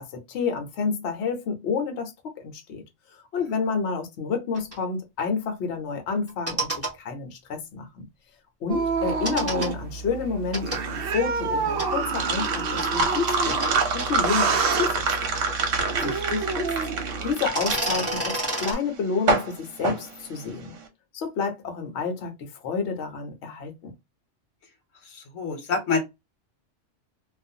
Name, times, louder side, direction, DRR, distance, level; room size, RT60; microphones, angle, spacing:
voice 1, 0.0-2.8 3.1-8.1 8.6-13.6 13.9-15.0 15.3-15.4 16.0-16.7 17.2-20.7 21.1-23.9, left 5 dB, 65° left, 1.0 m, -29 dB
sound 1, 4.5-4.8 6.3-6.9 9.3-9.7 10.5-10.8 11.8-11.9 12.8-12.9 13.6-13.7 14.0-14.1 15.0-16.6 16.8-16.9 17.4-18.7, right 1 dB, 15° right, 0.9 m, -29 dB
sound 2, 8.7-17.3, right 5 dB, 60° right, 0.7 m, -29 dB
sound 3, 10.9-20.8, right 4 dB, 80° right, 1.1 m, -27 dB
voice 2, 25.0-26.1, left 4 dB, 85° left, 1.2 m, -27 dB
2.5 x 2.4 x 2.6 m
omnidirectional pair, 1.3 m